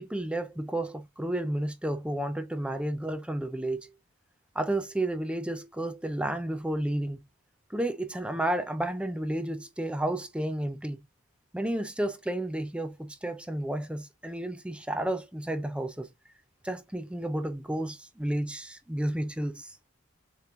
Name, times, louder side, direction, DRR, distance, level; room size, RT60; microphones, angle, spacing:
voice 1, 0.0-3.9 4.5-7.2 7.7-11.0 11.5-16.1 16.6-19.8, right 1 dB, 5° right, 0.4 m, -31 dB
6.8 x 3.1 x 2.5 m
head